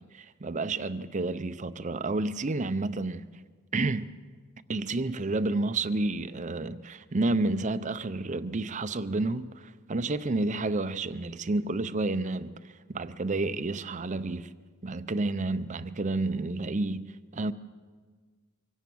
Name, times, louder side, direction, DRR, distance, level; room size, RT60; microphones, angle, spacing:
voice 1, 0.0-3.2 3.7-4.1 4.7-14.5 14.8-17.5, right 2 dB, 35° right, 0.6 m, -30 dB
24.5 x 17.5 x 6.2 m
head